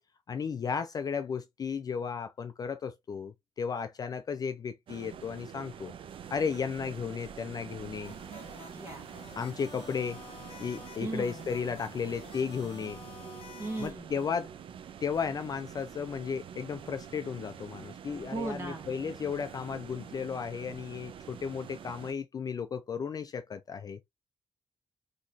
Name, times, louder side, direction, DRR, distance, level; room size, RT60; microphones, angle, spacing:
voice 1, 0.3-5.9 6.3-8.1 9.4-10.2 10.6-13.0 13.8-14.5 15.0-24.0, left 6 dB, 35° left, 0.3 m, -34 dB
sound 1, 4.9-22.1, right 8 dB, 55° right, 0.4 m, -46 dB
sound 2, 8.0-13.9, left 6 dB, 60° left, 1.2 m, -50 dB
voice 2, 8.6-9.1 11.0-11.4 13.6-14.1 18.3-18.9, right 2 dB, 20° right, 1.3 m, -37 dB
4.0 x 2.9 x 2.4 m
wide cardioid pair, 170°, 11 cm